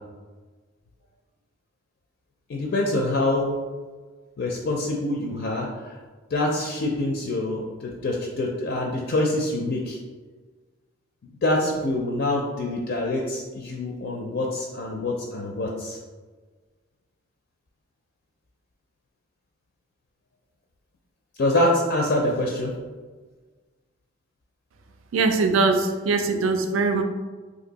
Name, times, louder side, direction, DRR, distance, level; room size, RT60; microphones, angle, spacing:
voice 1, 2.5-3.6 4.4-6.0 6.3-10.0 11.4-16.0 21.4-22.7, left 1 dB, 55° left, 0 dB, 0.4 m, -25 dB
voice 2, 25.1-27.0, right 3 dB, 85° right, 6 dB, 0.4 m, -21 dB
2.6 x 2.6 x 3.9 m, 1.4 s
head